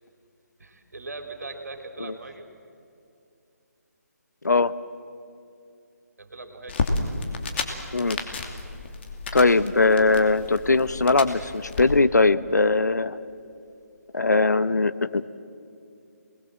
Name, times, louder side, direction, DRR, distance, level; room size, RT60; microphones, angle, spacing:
voice 1, 0.6-2.5 6.2-6.8, right 3 dB, 65° right, 5 dB, 3.3 m, -40 dB
sound 1, 6.7-11.8, left 3 dB, 40° left, 2.7 m, -32 dB
voice 2, 9.3-13.2 14.1-15.3, left 3 dB, 80° left, 13 dB, 1.0 m, -20 dB
27.0 x 20.5 x 7.6 m, 2.6 s
figure-of-eight pair, 150°, 9 cm